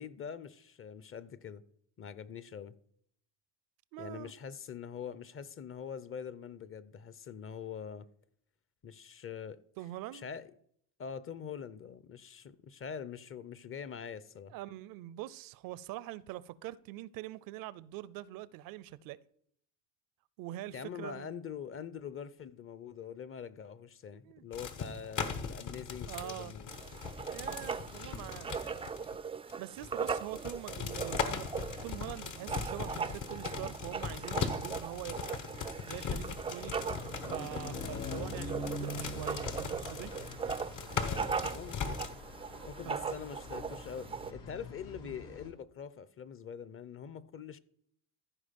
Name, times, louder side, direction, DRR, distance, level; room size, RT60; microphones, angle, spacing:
voice 1, 0.0-1.6 2.0-2.7 4.0-8.1 8.8-9.6 10.1-10.5 11.0-14.5 20.7-26.7 37.8-38.3 41.0-42.0 42.7-47.6, left 7 dB, 40° left, 0.7 m, -44 dB
voice 2, 3.9-4.3 9.8-10.3 14.5-19.2 20.4-21.3 24.1-24.4 26.1-26.5 27.3-28.5 29.6-31.5 31.8-35.4 35.9-36.8 37.2-40.1 42.9-43.2 45.0-45.1, right 15 dB, 75° right, 0.6 m, -44 dB
sound 1, 24.5-29.2 29.5-29.6 29.8-42.1, left 6 dB, 60° left, 1.3 m, -39 dB
Writing, 26.7-44.3, right 6 dB, 15° right, 0.3 m, -40 dB
sound 2, 36.5-45.5, left 2 dB, 85° left, 2.6 m, -45 dB
14.5 x 5.0 x 5.3 m
cardioid pair, 95°, 35 cm